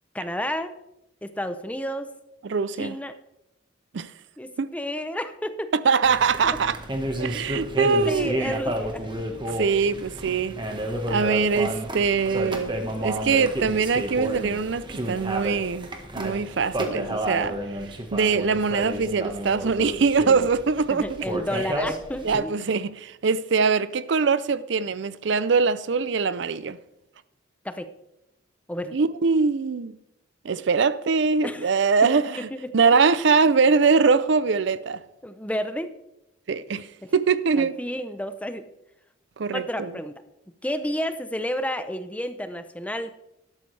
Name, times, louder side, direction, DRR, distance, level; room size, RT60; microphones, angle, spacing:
voice 1, 0.1-0.7 1.2-2.1 2.8-3.1 4.4-5.7 6.4-6.6 8.0-9.1 20.9-22.5 27.6-27.9 28.7-29.0 31.4-32.1 32.4-32.6 35.2-35.9 37.0-37.1 37.6-38.7 39.5-40.1 40.6-43.1, equal, 5° left, 0.6 m, -31 dB
voice 2, 2.4-3.0 3.9-4.1 4.6-4.7 5.8-6.8 7.2-8.6 9.5-10.6 11.1-12.8 13.0-15.9 16.2-17.6 18.1-21.3 22.2-26.8 28.9-29.9 30.4-32.5 32.7-35.0 36.5-36.9 37.1-37.8 39.4-39.9, right 5 dB, 60° right, 0.5 m, -22 dB
sound 1, 6.0-22.4, right 1 dB, 25° right, 1.4 m, -31 dB
12.5 x 12.0 x 3.3 m
head